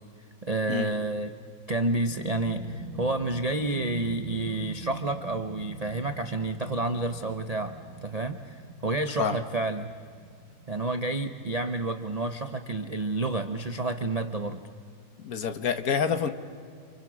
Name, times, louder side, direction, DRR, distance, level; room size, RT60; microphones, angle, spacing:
voice 1, 0.4-1.3 1.7-7.7 8.0-9.9 10.7-14.6, right 2 dB, 55° right, 8 dB, 0.4 m, -30 dB
sound 1, 1.8-13.1, right 3 dB, 90° right, 3.0 m, -44 dB
voice 2, 15.2-16.3, left 7 dB, 55° left, 10 dB, 1.4 m, -27 dB
29.0 x 27.0 x 6.2 m, 2.2 s
omnidirectional pair, 2.0 m